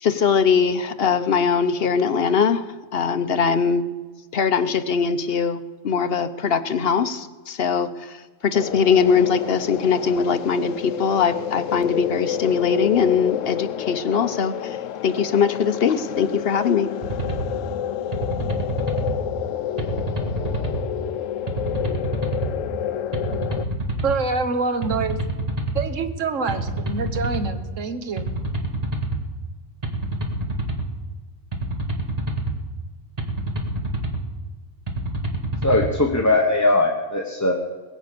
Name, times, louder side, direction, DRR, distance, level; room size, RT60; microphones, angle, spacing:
voice 1, 0.0-2.6 2.9-3.8 4.3-8.2 8.4-14.8 15.0-16.9, left 6 dB, 55° left, 11 dB, 0.9 m, -21 dB
sound 1, 8.5-23.6, left 11 dB, 80° left, 1.0 m, -29 dB
sound 2, 17.0-17.5 18.1-19.1 19.8-20.8 21.5-22.5 23.1-24.2 24.8-25.8 26.5-27.5 28.2-29.2 29.8-30.9 31.5-32.5 33.2-34.2 34.9-35.9, right 2 dB, 30° right, 1.8 m, -27 dB
voice 2, 24.0-25.2 25.7-28.3, right 4 dB, 75° right, 9 dB, 1.6 m, -26 dB
voice 3, 35.6-37.5, left 2 dB, 15° left, 0 dB, 1.1 m, -19 dB
21.0 x 8.3 x 6.8 m, 1.4 s
omnidirectional pair, 1.3 m